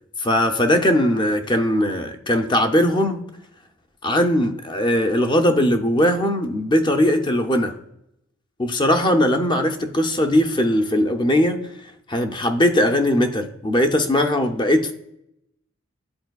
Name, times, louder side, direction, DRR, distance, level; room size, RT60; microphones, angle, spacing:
voice 1, 0.2-3.2 4.0-7.7 8.6-11.6 12.1-14.9, left 1 dB, 25° left, 6 dB, 0.6 m, -19 dB
10.5 x 4.3 x 2.3 m, 0.79 s
head